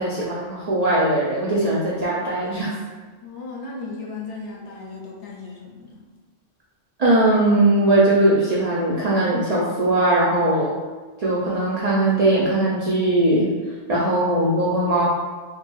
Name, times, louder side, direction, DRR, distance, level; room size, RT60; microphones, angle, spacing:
voice 1, 0.0-2.7 7.0-10.7 11.2-13.5 13.9-15.0, right 1 dB, 75° right, -6 dB, 0.3 m, -20 dB
voice 2, 3.2-6.1, left 3 dB, 65° left, -2 dB, 0.8 m, -36 dB
3.0 x 2.5 x 2.2 m, 1.4 s
omnidirectional pair, 1.2 m